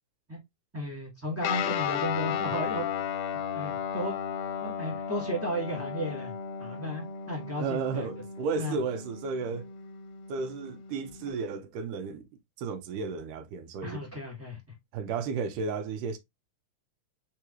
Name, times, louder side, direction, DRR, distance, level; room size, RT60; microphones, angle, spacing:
voice 1, 0.7-2.9 3.5-4.1 4.6-6.3 6.6-8.2 8.6-8.8 13.8-14.6, equal, 10° right, 0.6 m, -34 dB
Guitar, 1.4-11.3, left 8 dB, 80° left, 2.0 m, -35 dB
voice 2, 7.6-9.7 10.3-12.3 12.6-14.0 14.9-16.2, right 5 dB, 85° right, 2.3 m, -33 dB
4.9 x 3.9 x 2.8 m
omnidirectional pair, 3.7 m